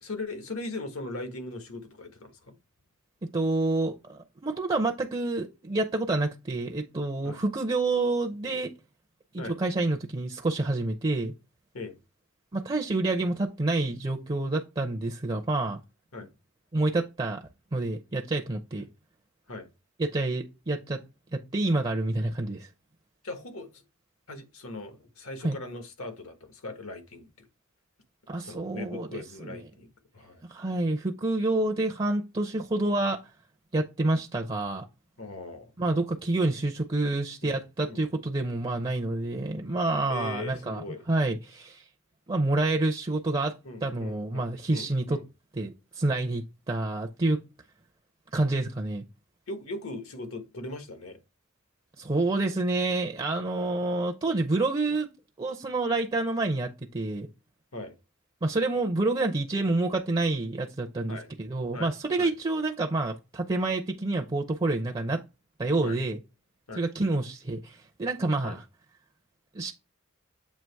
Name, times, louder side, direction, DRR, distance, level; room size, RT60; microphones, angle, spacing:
voice 1, 0.0-2.5 7.2-7.4 9.4-9.6 11.7-11.9 16.1-16.3 19.5-19.7 23.2-23.8 24.3-27.3 28.4-30.4 35.2-35.7 37.4-37.6 37.9-38.3 40.1-41.0 43.6-45.2 49.5-51.2 57.7-57.9 61.1-61.3 61.7-62.3 65.8-66.0 66.7-66.8 68.4-68.6, left 2 dB, 80° left, 1.4 m, -39 dB
voice 2, 3.3-8.7 9.3-11.3 12.5-15.8 16.7-18.9 20.0-21.0 21.3-22.7 25.4-25.6 28.3-29.6 30.5-33.2 33.7-34.8 35.8-41.8 42.3-43.5 43.8-45.2 45.6-47.4 48.3-49.0 52.0-55.1 55.4-57.3 58.4-65.2 65.6-66.2 66.8-68.6 69.5-69.7, right 2 dB, 25° right, 0.6 m, -28 dB
7.5 x 2.9 x 4.5 m
head